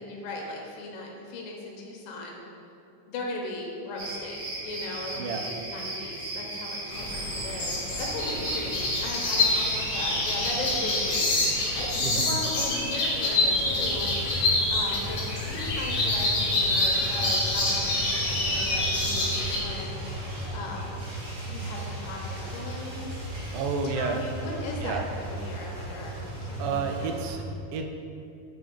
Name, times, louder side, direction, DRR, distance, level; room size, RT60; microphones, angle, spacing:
voice 1, 0.0-2.4 3.1-20.0 20.5-21.0 21.4-23.1 23.8-27.2, left 2 dB, 85° left, -1 dB, 2.6 m, -37 dB
sound 1, 4.0-11.9, right 2 dB, 60° right, 2.1 m, -36 dB
voice 2, 5.2-5.5 12.0-12.3 23.5-24.2 24.8-25.0 26.6-27.9, right 5 dB, 80° right, 4 dB, 1.9 m, -31 dB
sound 2, 6.9-19.6, left 2 dB, 60° left, 2.2 m, -26 dB
sound 3, 13.5-27.3, right 1 dB, 45° right, 1.4 m, -36 dB
6.9 x 3.1 x 5.3 m, 2.6 s
omnidirectional pair, 3.9 m